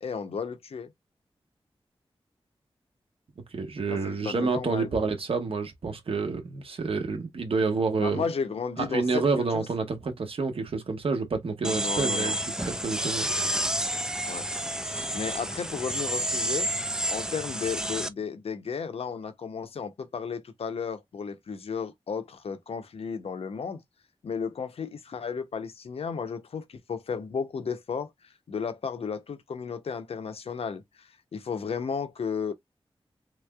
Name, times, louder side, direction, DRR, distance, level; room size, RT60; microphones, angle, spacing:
voice 1, 0.0-0.9 3.9-4.9 8.0-9.6 11.6-12.4 14.3-14.5 14.8-16.7 17.1-23.8 24.2-32.5, left 6 dB, 85° left, 0.7 m, -34 dB
voice 2, 3.5-8.3 8.8-13.3, right 4 dB, 70° right, 1.1 m, -28 dB
sound 1, 11.6-18.1, right 1 dB, 5° right, 0.4 m, -30 dB
3.4 x 3.1 x 2.3 m
wide cardioid pair, 120°, 10 cm